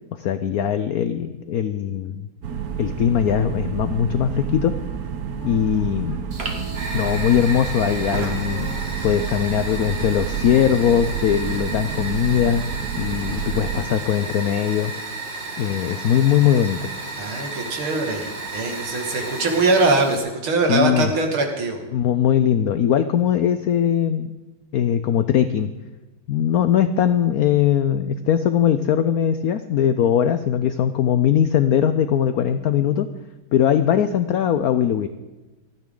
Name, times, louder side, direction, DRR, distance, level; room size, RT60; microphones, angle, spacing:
voice 1, 0.1-2.3 2.8-4.8 5.4-6.2 6.9-8.7 9.0-12.6 13.0-14.9 15.6-16.9 20.6-21.1 21.9-24.3 24.7-25.7 26.3-33.1 33.5-35.1, left 9 dB, 75° left, 11 dB, 0.8 m, -20 dB
sound 1, 2.4-13.8, right 7 dB, 55° right, 1.2 m, -29 dB
Wind instrument woodwind instrument, 5.3-12.3, left 1 dB, 15° left, 3.8 m, -45 dB
Fire, 6.3-20.2, right 2 dB, 30° right, 1.8 m, -33 dB
voice 2, 17.2-21.8, right 3 dB, 85° right, 3 dB, 2.9 m, -22 dB
27.5 x 9.6 x 3.8 m, 1.1 s
omnidirectional pair, 2.3 m